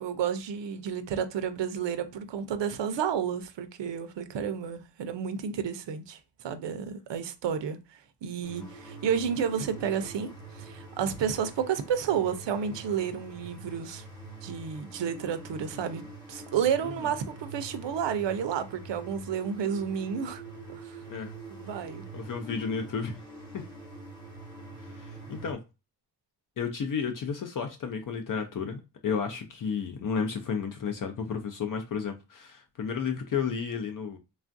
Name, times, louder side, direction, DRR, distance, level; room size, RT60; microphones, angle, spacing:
voice 1, 0.0-7.8 8.2-14.0 14.4-16.0 16.3-20.4 20.7-21.0 21.5-22.0, right 8 dB, 85° right, 0.6 m, -31 dB
sound 1, 8.4-25.5, right 2 dB, 10° left, 0.9 m, -45 dB
voice 2, 22.1-23.2 23.5-23.6 24.8-25.6 26.6-34.2, left 6 dB, 50° left, 0.5 m, -32 dB
3.3 x 2.4 x 2.5 m
wide cardioid pair, 160°, 42 cm